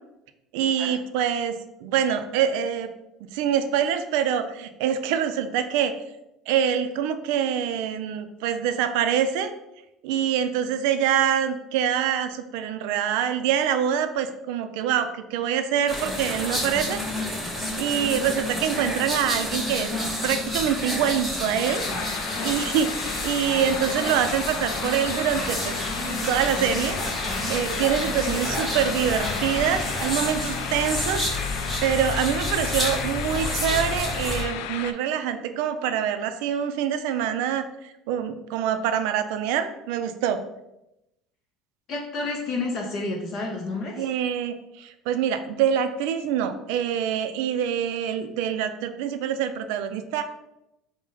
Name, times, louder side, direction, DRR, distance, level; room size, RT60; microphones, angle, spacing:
voice 1, 0.5-2.9 3.2-6.0 6.5-9.5 10.0-17.0 17.8-19.9 20.2-21.8 22.4-25.8 26.1-27.0 27.5-31.5 31.8-40.4 44.0-50.2, right 9 dB, 75° right, 9 dB, 0.3 m, -25 dB
sound 1, 15.9-34.4, left 1 dB, 5° left, 0.7 m, -29 dB
sound 2, 21.6-34.9, left 9 dB, 85° left, 0.3 m, -34 dB
voice 2, 41.9-44.1, left 3 dB, 35° left, 0 dB, 0.5 m, -30 dB
4.8 x 2.1 x 3.8 m, 0.89 s
cardioid pair, 180°, 0 cm